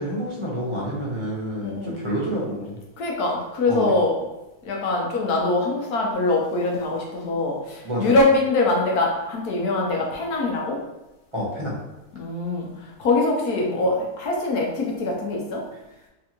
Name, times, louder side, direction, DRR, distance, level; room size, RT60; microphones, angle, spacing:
voice 1, 0.0-2.8 3.7-3.9 7.8-8.2 11.3-11.8, equal, 20° right, -5 dB, 0.9 m, -28 dB
voice 2, 3.0-4.1 4.6-10.8 12.1-15.6, left 2 dB, 75° left, -1 dB, 1.4 m, -23 dB
3.7 x 3.3 x 3.0 m, 0.99 s
omnidirectional pair, 1.6 m